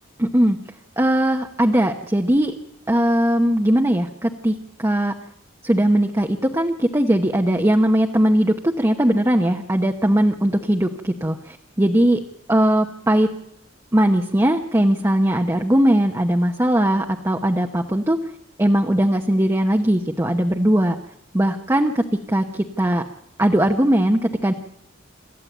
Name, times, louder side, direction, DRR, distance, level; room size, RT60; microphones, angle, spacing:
voice 1, 0.2-0.6 1.0-2.5 2.9-5.1 5.6-12.2 12.5-13.3 13.9-18.2 18.6-21.0 21.3-23.0 23.4-24.5, right 1 dB, 15° right, 3 dB, 1.0 m, -19 dB
27.0 x 13.5 x 8.1 m, 0.81 s
head